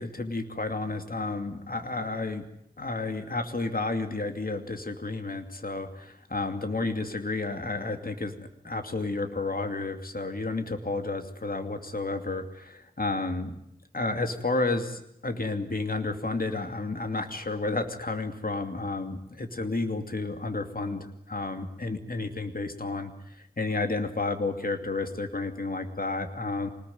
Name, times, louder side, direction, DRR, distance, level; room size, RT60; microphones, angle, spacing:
voice 1, 0.0-2.5 2.8-8.4 8.6-13.6 13.9-26.7, left 3 dB, 70° left, 6 dB, 2.7 m, -31 dB
26.0 x 20.0 x 9.4 m, 0.77 s
wide cardioid pair, 45°, 16 cm